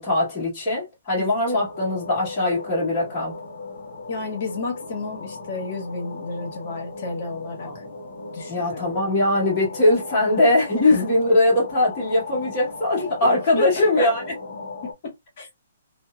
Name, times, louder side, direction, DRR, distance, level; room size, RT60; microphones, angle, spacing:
voice 1, 0.0-3.3 7.6-7.8 8.5-14.2, left 1 dB, 15° left, 1.2 m, -21 dB
voice 2, 1.2-1.6 4.1-7.8 8.3-8.9 10.8-11.0 13.0-13.1 13.6-14.1 14.8-15.5, left 3 dB, 40° left, 1.1 m, -31 dB
sound 1, 1.6-14.9, left 3 dB, 55° left, 0.7 m, -38 dB
2.7 x 2.1 x 2.3 m
hypercardioid pair, 175°, 0 cm